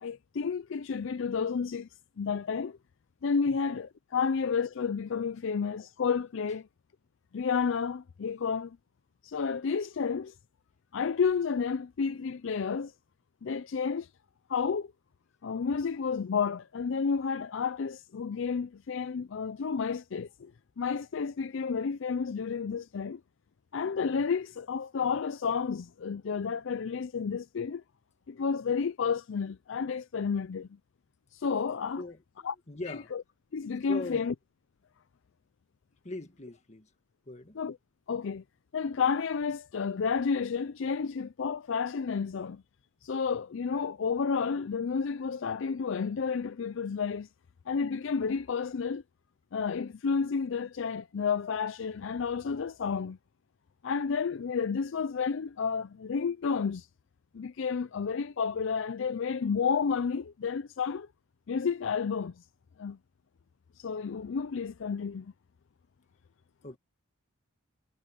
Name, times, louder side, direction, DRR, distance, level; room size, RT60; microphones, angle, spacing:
voice 1, 0.0-1.9 2.2-2.8 3.2-6.7 7.3-8.8 9.2-10.3 10.9-12.9 13.4-14.1 14.5-14.9 15.4-20.5 20.8-23.2 23.7-27.8 28.3-30.7 31.3-32.0 32.4-32.5 32.9-33.2 33.5-34.3 37.5-37.8 38.1-38.4 38.7-42.6 43.0-47.3 47.7-49.0 49.5-53.2 53.8-56.9 57.3-61.1 61.5-62.4 62.8-63.0 63.8-65.3, left 5 dB, 60° left, 0.4 m, -31 dB
voice 2, 32.7-33.1 33.9-34.3 36.0-36.9 37.3-37.6 66.6-66.8, left 2 dB, 30° left, 1.7 m, -40 dB
head